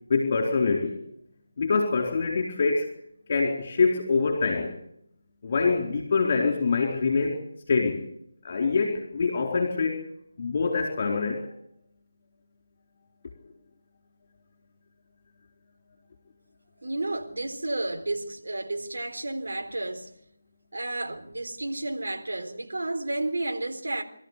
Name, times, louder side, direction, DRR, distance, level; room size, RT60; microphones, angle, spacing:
voice 1, 0.1-1.0 1.6-2.9 3.3-4.7 5.4-7.4 7.7-8.0 8.4-10.0 10.4-11.5, left 4 dB, 35° left, 4.3 m, -25 dB
voice 2, 16.8-20.1 20.7-24.0, right 2 dB, 65° right, 3.8 m, -31 dB
26.5 x 13.5 x 8.3 m
figure-of-eight pair, 160°, 0 cm